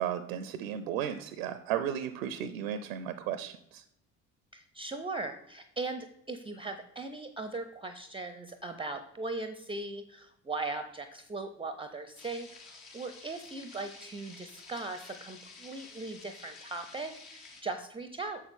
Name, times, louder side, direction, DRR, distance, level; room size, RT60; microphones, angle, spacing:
voice 1, 0.0-3.8, right 9 dB, 75° right, 12 dB, 0.5 m, -34 dB
voice 2, 4.5-18.4, right 3 dB, 15° right, 9 dB, 0.5 m, -39 dB
sound 1, 12.2-17.6, left 4 dB, 65° left, 1.7 m, -51 dB
6.8 x 6.4 x 3.5 m, 0.77 s
figure-of-eight pair, 50°, 41 cm